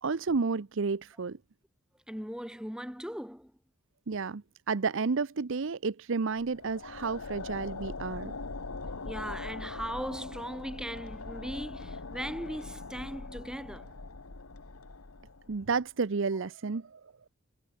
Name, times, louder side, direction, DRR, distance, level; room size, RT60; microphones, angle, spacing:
voice 1, 0.0-1.4 4.1-8.3 15.5-17.1, right 4 dB, 60° right, 0.6 m, -31 dB
voice 2, 2.1-3.5 9.0-13.9, equal, 5° right, 5.3 m, -39 dB
sound 1, 6.4-15.7, left 3 dB, 75° left, 1.4 m, -41 dB
head